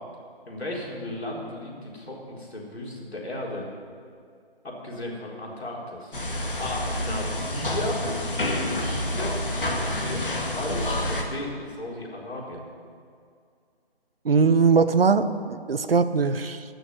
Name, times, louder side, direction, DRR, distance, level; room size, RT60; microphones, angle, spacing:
voice 1, 0.5-3.7 4.6-6.1 6.6-8.0 8.5-9.3 9.9-12.6, left 1 dB, 90° left, -3 dB, 4.3 m, -35 dB
sound 1, 6.1-11.2, left 1 dB, 55° left, 2.1 m, -28 dB
voice 2, 14.2-16.6, right 5 dB, 65° right, 12 dB, 0.8 m, -21 dB
14.0 x 6.6 x 9.6 m, 2.3 s
figure-of-eight pair, 175°, 31 cm